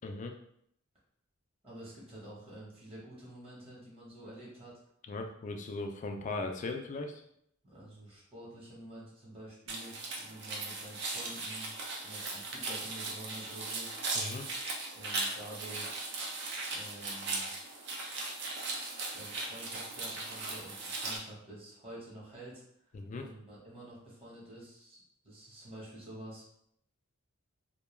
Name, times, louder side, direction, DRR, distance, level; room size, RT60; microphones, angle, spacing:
voice 1, 0.0-0.3 5.1-7.1 14.1-14.5 22.9-23.3, left 3 dB, 35° left, 4 dB, 0.3 m, -38 dB
voice 2, 1.6-4.8 7.6-11.7 12.0-13.9 14.9-16.1 16.7-17.5 19.1-26.4, right 1 dB, 30° right, -6 dB, 1.0 m, -49 dB
sound 1, 9.7-21.2, right 3 dB, 55° right, 0.5 m, -38 dB
2.2 x 2.2 x 3.1 m, 0.70 s
head